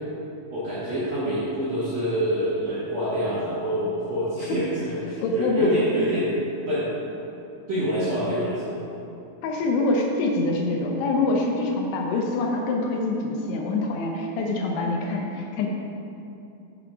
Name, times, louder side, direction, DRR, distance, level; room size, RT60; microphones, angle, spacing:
voice 1, 0.5-6.4 6.6-6.9 7.7-8.8, equal, 65° right, -11 dB, 1.6 m, -26 dB
voice 2, 5.2-5.8 9.4-15.7, left 2 dB, 80° left, 0 dB, 2.6 m, -25 dB
7.0 x 5.6 x 4.6 m, 2.7 s
omnidirectional pair, 5.0 m